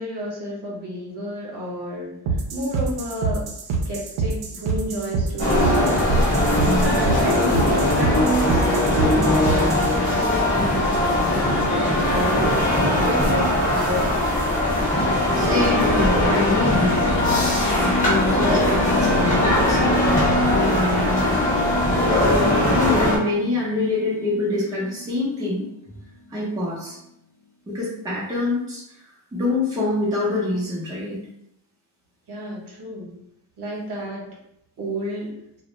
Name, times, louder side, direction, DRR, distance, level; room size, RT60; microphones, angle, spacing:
voice 1, 0.0-2.1 2.5-3.4 3.9-5.8 6.8-12.6 12.9-14.1 32.3-33.1 33.6-34.3 34.8-35.3, equal, 55° right, -3 dB, 0.9 m, -30 dB
sound 1, 2.3-9.9, right 4 dB, 80° right, 0.6 m, -26 dB
sound 2, 5.4-23.2, left 1 dB, 15° left, 0.8 m, -20 dB
voice 2, 6.6-7.0 15.0-17.2 17.7-21.5 22.0-25.7 26.3-27.0 27.7-31.2, left 2 dB, 10° right, -7 dB, 0.4 m, -26 dB
sound 3, 15.0-26.0, left 2 dB, 55° left, 0.6 m, -29 dB
2.3 x 2.0 x 3.0 m, 0.79 s
wide cardioid pair, 180°, 48 cm